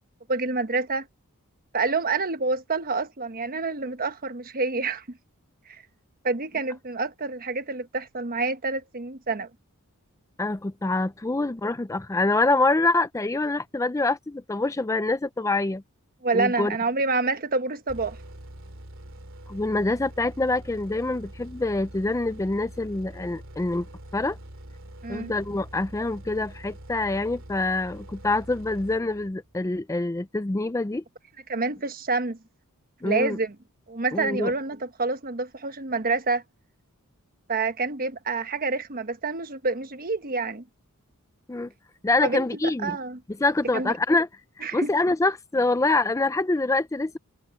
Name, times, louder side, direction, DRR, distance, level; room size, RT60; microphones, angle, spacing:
voice 1, 0.3-1.1 1.7-5.2 5.7-5.8 6.2-9.5 16.2-18.2 25.0-25.3 31.5-32.4 33.0-33.5 33.9-36.4 37.5-40.6 42.2-43.2 43.7-43.9 44.6-44.9, right 3 dB, 40° right, 1.2 m, -28 dB
voice 2, 10.4-15.8 16.3-16.8 19.5-23.9 24.1-24.4 25.1-31.0 33.0-33.4 34.1-34.5 41.5-41.7 42.0-42.9 43.4-44.3 44.7-47.2, left 2 dB, 15° left, 0.4 m, -25 dB
sound 1, 17.9-29.5, right 1 dB, 65° right, 2.8 m, -44 dB
head